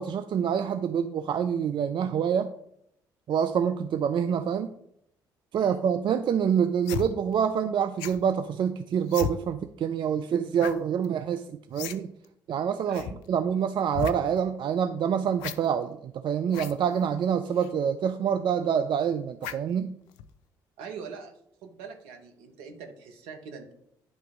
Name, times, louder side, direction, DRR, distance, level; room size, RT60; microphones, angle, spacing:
voice 1, 0.0-2.5 3.3-4.7 5.5-12.1 12.5-13.0 13.3-20.0, right 8 dB, 50° right, 9 dB, 0.4 m, -26 dB
sound 1, 6.8-7.1 8.0-8.2 9.1-9.3 10.6-10.8 11.0-11.1 11.7-12.0 12.2-12.3 12.9-13.1 13.9-14.1 15.4-15.6 16.5-16.7 17.6-17.7 19.4-19.7 20.2-20.3, left 10 dB, 75° left, 0.4 m, -34 dB
voice 2, 12.9-13.2 20.8-21.3 21.6-23.7, right 5 dB, 70° right, 4 dB, 1.1 m, -43 dB
9.9 x 3.4 x 5.0 m, 0.73 s
hypercardioid pair, 50°, 10 cm